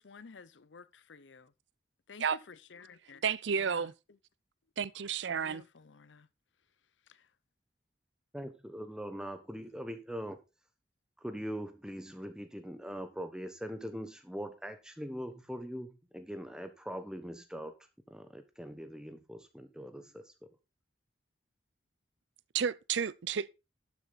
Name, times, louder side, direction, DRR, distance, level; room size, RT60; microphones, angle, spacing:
voice 1, 0.0-1.5 2.1-3.2 3.6-3.9 5.4-6.3 7.1-7.3, left 5 dB, 85° left, 0.7 m, -53 dB
voice 2, 3.2-3.9 4.8-5.6 22.5-23.5, right 7 dB, 85° right, 0.5 m, -31 dB
voice 3, 8.3-10.4 11.2-17.7 18.1-20.5, equal, 5° right, 1.2 m, -42 dB
12.0 x 7.0 x 4.1 m
head